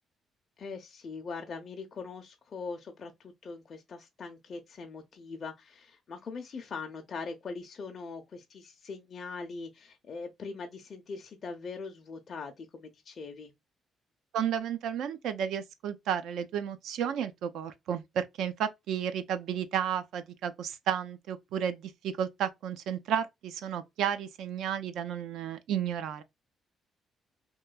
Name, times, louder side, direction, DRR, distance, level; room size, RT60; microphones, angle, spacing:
voice 1, 0.6-13.5, left 4 dB, 50° left, 0.5 m, -41 dB
voice 2, 14.3-26.2, right 9 dB, 80° right, 0.4 m, -32 dB
3.0 x 2.2 x 2.2 m
cardioid pair, 90°, 0 cm